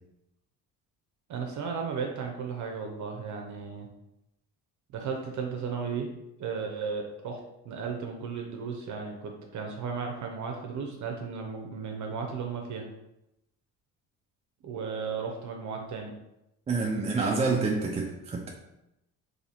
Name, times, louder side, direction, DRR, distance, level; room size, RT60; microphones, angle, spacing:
voice 1, 1.3-3.9 4.9-6.1 6.4-7.4 7.6-12.9 14.6-16.1, right 5 dB, 55° right, 2 dB, 0.7 m, -35 dB
voice 2, 16.7-18.5, right 3 dB, 20° right, 1 dB, 0.3 m, -27 dB
2.8 x 2.7 x 4.2 m, 0.88 s
cardioid pair, 90°, 35 cm